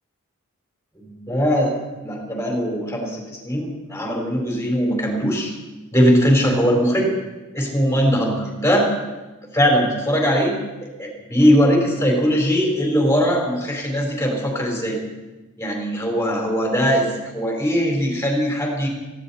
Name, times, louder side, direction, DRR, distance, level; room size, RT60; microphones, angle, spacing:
voice 1, 0.9-5.5 5.9-7.1 7.5-8.9 9.5-10.5 10.8-15.0 15.6-18.9, equal, 10° left, -1 dB, 4.3 m, -20 dB
18.0 x 16.0 x 4.3 m, 1.2 s
head